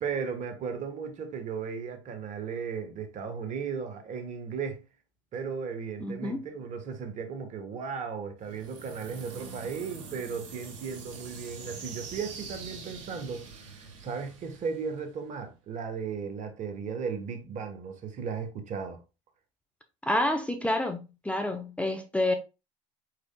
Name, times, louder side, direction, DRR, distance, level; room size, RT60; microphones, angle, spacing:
voice 1, 0.0-4.8 5.3-19.0, right 6 dB, 45° right, 1.3 m, -36 dB
voice 2, 6.0-6.4 20.0-22.3, left 1 dB, 5° left, 0.7 m, -28 dB
sound 1, 8.4-15.3, right 4 dB, 60° right, 2.1 m, -45 dB
4.9 x 4.8 x 2.3 m
hypercardioid pair, 75°, 17 cm